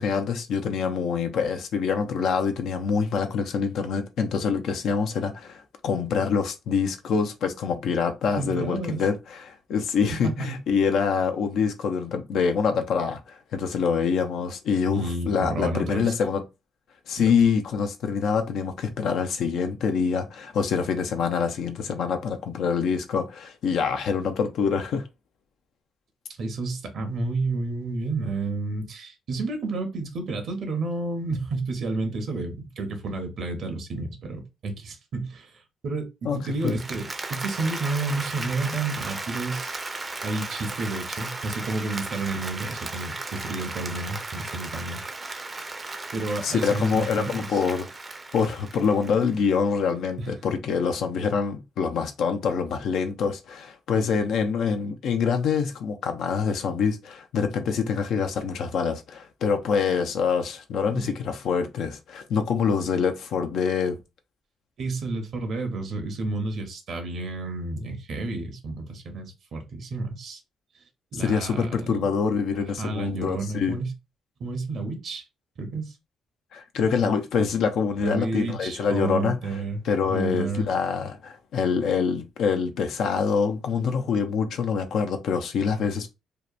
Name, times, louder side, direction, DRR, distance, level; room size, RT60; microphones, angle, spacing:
voice 1, 0.0-16.4 17.1-25.1 36.2-36.4 36.6-36.7 46.4-47.9 48.3-64.0 71.2-73.8 76.5-79.4 79.8-86.1, left 6 dB, 75° left, 0.4 m, -25 dB
voice 2, 8.4-9.0 10.2-10.5 14.9-16.1 17.2-17.3 26.4-39.8 40.2-45.0 46.1-47.6 50.2-50.3 60.9-61.1 64.8-70.4 71.1-72.1 72.8-73.9 74.4-75.2 75.6-75.9 78.0-80.7, right 3 dB, 60° right, 0.7 m, -31 dB
Applause, 36.5-49.5, right 3 dB, 25° right, 0.4 m, -36 dB
2.8 x 2.1 x 2.3 m
cardioid pair, 90°, 0 cm